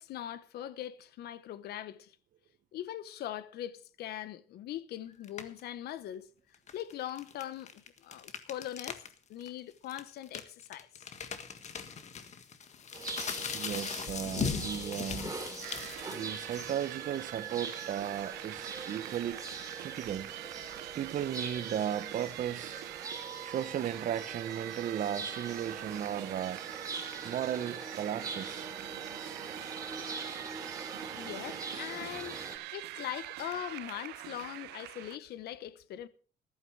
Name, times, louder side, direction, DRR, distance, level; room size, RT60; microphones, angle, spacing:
voice 1, 0.0-2.2 2.7-6.3 6.7-9.0 9.3-11.1 31.1-32.4 32.7-36.1, left 12 dB, 70° left, 1.1 m, -41 dB
sound 1, 5.2-5.6 6.5-9.1 9.4-9.5 9.9-16.9, left 6 dB, 40° left, 1.6 m, -39 dB
sound 2, 12.9-32.6, right 3 dB, 20° right, 3.8 m, -43 dB
voice 2, 13.5-15.3 16.1-19.4 19.8-20.3 21.0-22.8 23.4-26.6 27.2-28.7, right 10 dB, 50° right, 1.0 m, -35 dB
sound 3, 15.6-35.2, right 18 dB, 85° right, 0.6 m, -44 dB
14.0 x 12.0 x 4.7 m
cardioid pair, 110°, 17 cm